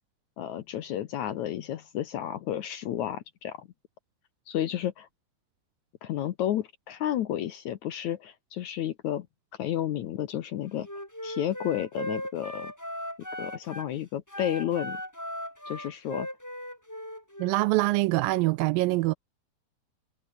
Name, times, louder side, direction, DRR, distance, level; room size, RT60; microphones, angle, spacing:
voice 1, 0.4-3.7 4.5-5.1 6.0-9.3 9.6-10.9 11.2-12.7 13.4-15.0 15.7-16.3, left 11 dB, 65° left, 1.9 m, -31 dB
Wind instrument woodwind instrument, 10.8-13.9 14.3-17.7, equal, 5° left, 5.8 m, -38 dB
voice 2, 17.4-19.1, right 20 dB, 80° right, 2.1 m, -24 dB
omnidirectional pair, 4.3 m